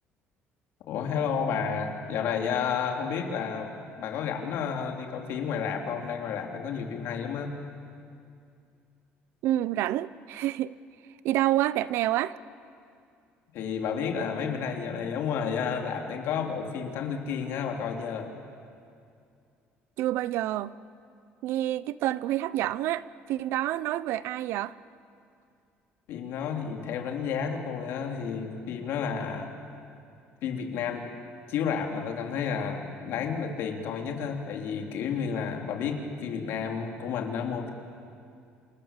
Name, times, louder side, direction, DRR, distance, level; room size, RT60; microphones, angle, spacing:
voice 1, 0.9-3.7 4.0-7.6 13.5-18.3 26.1-29.5 30.4-31.1 31.5-37.7, left 6 dB, 75° left, 3.4 m, -31 dB
voice 2, 9.4-10.7 11.2-12.4 20.0-20.8 21.4-24.7, right 14 dB, 75° right, 0.7 m, -28 dB
28.0 x 26.5 x 7.5 m
cardioid pair, 145°, 4 cm